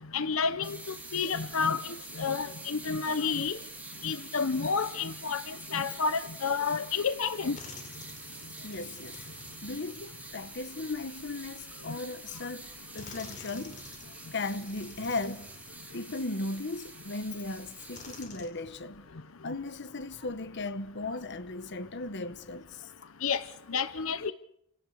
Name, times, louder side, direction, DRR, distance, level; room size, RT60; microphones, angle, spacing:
voice 1, 0.1-3.6 4.0-7.6 23.2-23.4 23.7-24.3, left 5 dB, 75° left, 0.9 m, -30 dB
sound 1, 0.6-18.2, right 2 dB, 5° right, 3.3 m, -46 dB
sound 2, 7.5-11.2 12.1-12.2 13.0-16.3 16.9-17.0 17.9-18.5, left 3 dB, 35° left, 3.6 m, -50 dB
voice 2, 8.6-9.2 9.6-12.7 12.9-13.9 14.3-15.5 15.9-19.0 19.4-23.1, left 2 dB, 55° left, 1.1 m, -37 dB
30.0 x 17.5 x 6.5 m
head